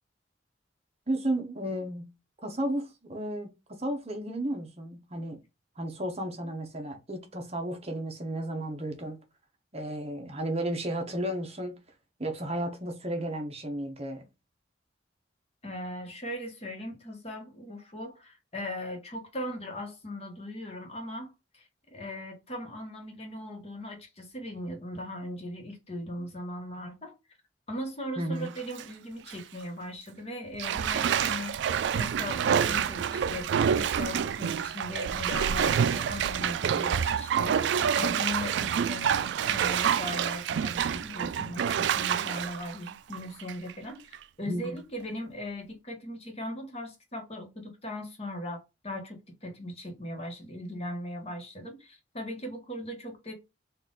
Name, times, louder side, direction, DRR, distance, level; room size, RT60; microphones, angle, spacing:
voice 1, 1.1-2.1 2.4-5.4 5.8-9.2 9.7-11.8 12.2-14.2 28.2-28.5 44.5-44.8, right 1 dB, 35° right, 0.9 m, -33 dB
voice 2, 15.6-27.2 27.7-31.5 32.0-53.3, left 1 dB, 35° left, 1.1 m, -39 dB
Bathtub (filling or washing), 28.4-28.8 29.3-29.4 30.6-43.7 44.1-44.2, right 8 dB, 70° right, 0.3 m, -27 dB
4.1 x 2.5 x 3.7 m
head